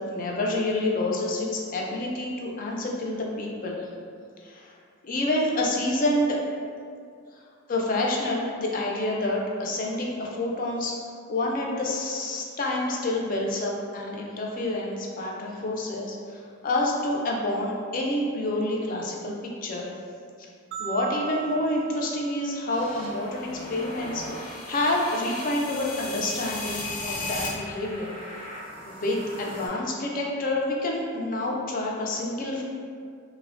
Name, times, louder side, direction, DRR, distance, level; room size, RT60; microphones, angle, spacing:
voice 1, 0.1-3.9 4.4-4.7 5.0-6.4 7.7-10.9 11.3-19.3 19.6-19.9 20.4-20.5 20.8-28.1 28.9-32.6, left 1 dB, 40° left, -2 dB, 0.3 m, -28 dB
sound 1, 20.7-23.1, right 7 dB, 55° right, 0.3 m, -38 dB
sound 2, 22.7-29.7, left 2 dB, 85° left, 0.7 m, -37 dB
3.2 x 2.0 x 2.5 m, 2.2 s
head